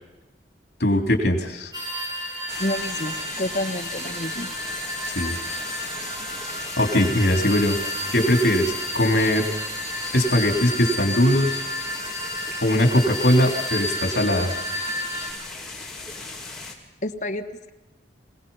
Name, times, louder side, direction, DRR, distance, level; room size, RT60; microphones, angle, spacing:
voice 1, 0.8-1.7 5.1-5.4 6.8-7.8 8.1-9.4 10.1-11.6 12.6-14.5, left 1 dB, 65° left, 3 dB, 3.5 m, -20 dB
sound 1, 1.7-15.3, equal, 25° right, 5.8 m, -31 dB
sound 2, 2.5-16.7, left 3 dB, 5° left, 2.9 m, -37 dB
voice 2, 2.6-4.5 17.0-17.7, left 1 dB, 40° left, 7 dB, 1.3 m, -29 dB
26.5 x 18.5 x 5.6 m, 1.0 s
head